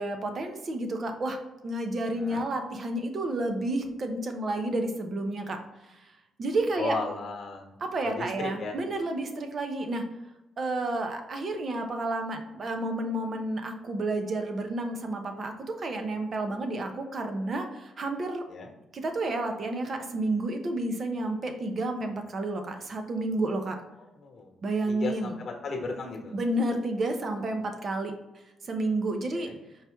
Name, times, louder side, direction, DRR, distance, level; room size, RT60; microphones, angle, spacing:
voice 1, 0.0-1.4 1.6-5.6 5.9-6.0 6.4-6.9 7.8-10.0 10.6-18.4 18.9-23.8 24.6-25.4 26.3-28.1 28.6-29.5, right 2 dB, 45° right, 5 dB, 0.8 m, -30 dB
voice 2, 6.7-7.7 8.0-8.8 18.5-18.7 24.2-24.5 24.9-26.4 29.3-29.6, left 3 dB, 50° left, 2 dB, 1.2 m, -35 dB
4.8 x 3.0 x 3.5 m, 0.99 s
cardioid pair, 90°, 0 cm